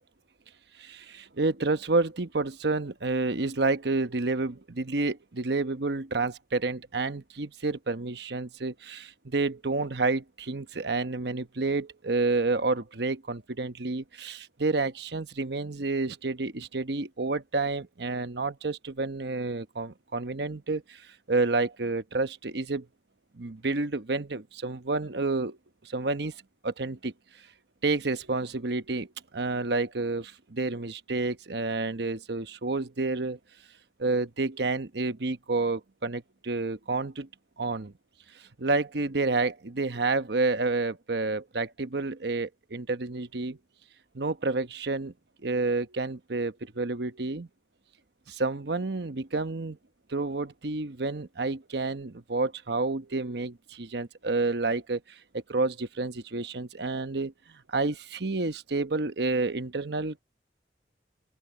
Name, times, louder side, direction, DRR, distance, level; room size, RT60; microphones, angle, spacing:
voice 1, 0.8-22.9 23.3-25.6 25.8-26.4 26.6-27.1 27.8-33.4 34.0-37.3 37.6-37.9 38.3-43.6 44.1-45.1 45.4-47.5 48.3-49.8 50.1-57.3 57.7-60.2, right 3 dB, 65° right, 1.0 m, -29 dB
open air
head